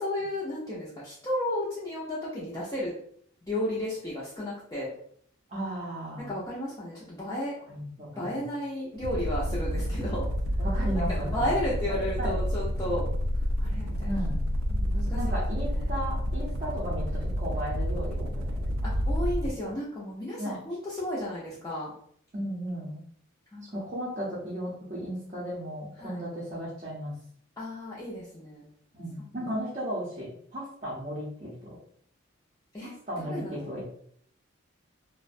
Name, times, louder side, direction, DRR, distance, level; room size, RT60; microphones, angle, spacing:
voice 1, 0.0-2.9 3.5-4.9 6.2-7.6 8.2-10.3 11.1-13.1 13.6-14.1 14.7-15.9 18.8-21.9 23.5-23.8 26.0-26.2 27.6-28.7 32.7-33.7, left 1 dB, 15° left, -9 dB, 0.5 m, -33 dB
voice 2, 5.5-6.4 7.7-8.4 10.6-11.6 12.2-12.4 14.0-14.5 15.1-18.9 20.4-20.6 22.3-23.0 23.7-27.2 28.9-31.8 32.8-33.8, equal, 35° right, -7 dB, 0.6 m, -35 dB
sound 1, 8.9-19.6, equal, 85° right, 0.3 m, -29 dB
2.4 x 2.1 x 2.5 m, 0.62 s
head